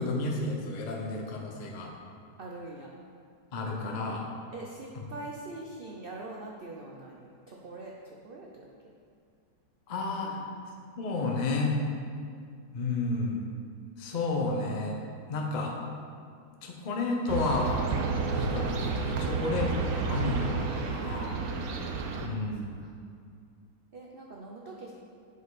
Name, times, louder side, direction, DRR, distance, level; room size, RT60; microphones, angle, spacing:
voice 1, 0.0-1.9 3.5-4.3 9.9-10.4 11.0-11.8 12.7-13.5 14.0-15.0 15.3-15.8 16.6-17.8 18.4-21.3 22.2-22.8, left 3 dB, 40° left, 0 dB, 0.6 m, -31 dB
voice 2, 2.4-2.9 4.5-8.7 10.2-10.6 20.8-22.1 22.8-22.9 23.9-24.9, right 2 dB, 85° right, -2 dB, 0.5 m, -44 dB
sound 1, 17.3-22.3, right 4 dB, 70° right, 1.1 m, -31 dB
7.8 x 5.2 x 4.0 m, 2.3 s
omnidirectional pair, 1.8 m